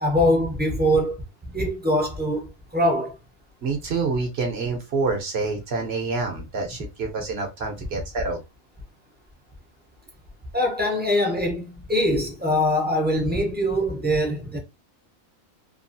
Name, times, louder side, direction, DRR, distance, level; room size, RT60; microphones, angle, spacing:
voice 1, 0.0-1.2 1.5-2.5 2.7-3.1 10.5-11.6 11.9-14.6, equal, 15° right, 0.4 m, -22 dB
voice 2, 3.6-8.4, right 4 dB, 60° right, 0.8 m, -27 dB
2.9 x 2.3 x 2.6 m
omnidirectional pair, 1.5 m